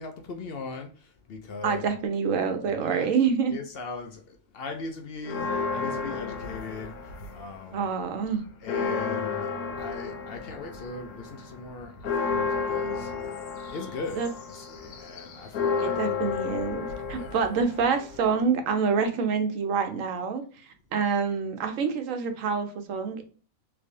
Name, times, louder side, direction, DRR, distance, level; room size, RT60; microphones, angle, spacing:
voice 1, 0.0-1.8 2.8-3.1 3.5-7.9 8.6-13.1 13.7-16.0 17.1-17.3, left 4 dB, 60° left, 0.6 m, -39 dB
voice 2, 1.6-3.6 7.7-8.5 14.2-14.3 15.8-20.4 20.9-23.3, right 5 dB, 70° right, 1.0 m, -27 dB
sound 1, 5.2-7.6 8.0-18.5, left 5 dB, 90° left, 1.2 m, -32 dB
3.4 x 3.3 x 2.5 m
omnidirectional pair, 1.5 m